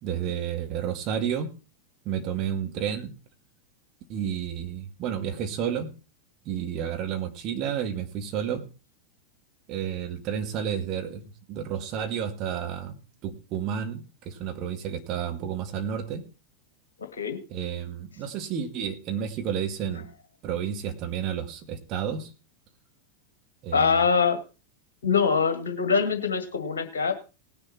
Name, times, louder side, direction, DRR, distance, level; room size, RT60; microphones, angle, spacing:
voice 1, 0.0-1.5 2.1-3.1 4.1-5.9 6.5-8.7 9.7-16.2 17.5-20.1 20.4-22.3 23.6-24.0, right 8 dB, 40° right, 5 dB, 2.0 m, -31 dB
voice 2, 17.0-17.4 23.7-24.4 25.0-27.1, left 5 dB, 65° left, 6 dB, 1.9 m, -24 dB
19.0 x 6.9 x 4.2 m, 0.32 s
figure-of-eight pair, 90°, 0 cm